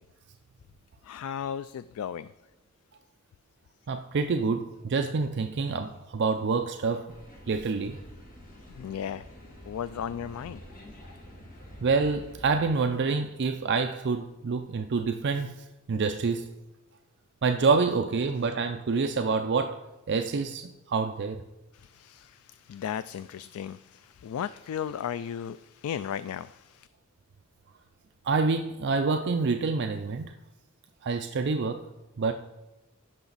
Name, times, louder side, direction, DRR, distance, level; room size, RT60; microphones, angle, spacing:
voice 1, 1.0-2.3 8.7-9.2 9.6-10.6 21.7-26.9, left 8 dB, 75° left, 0.3 m, -35 dB
voice 2, 3.9-7.1 7.5-8.0 11.8-16.5 17.4-19.8 20.1-21.4 28.2-30.3 31.0-31.8 32.2-32.3, right 4 dB, 55° right, 0.5 m, -27 dB
sound 1, 7.1-12.7, equal, 40° left, 1.9 m, -48 dB
16.0 x 5.8 x 4.0 m
head